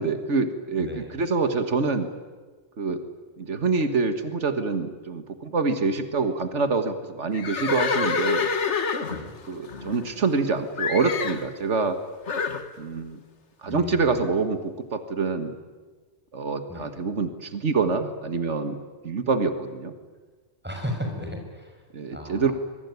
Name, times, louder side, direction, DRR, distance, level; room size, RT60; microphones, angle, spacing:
voice 1, 0.0-2.1 2.8-3.0 3.4-8.5 9.5-12.0 12.8-13.2 13.6-15.5 16.3-18.8 19.0-19.9 21.9-22.5, right 4 dB, 90° right, 8 dB, 2.0 m, -26 dB
voice 2, 0.8-1.1 9.1-9.4 13.7-14.2 16.7-16.9 20.6-21.7 22.1-22.5, left 1 dB, 10° right, 3 dB, 5.8 m, -34 dB
Livestock farm animals working animals, 7.3-10.4 10.8-11.5 12.3-12.6, left 5 dB, 80° left, 1.8 m, -27 dB
24.5 x 23.0 x 9.6 m, 1.3 s
omnidirectional pair, 1.2 m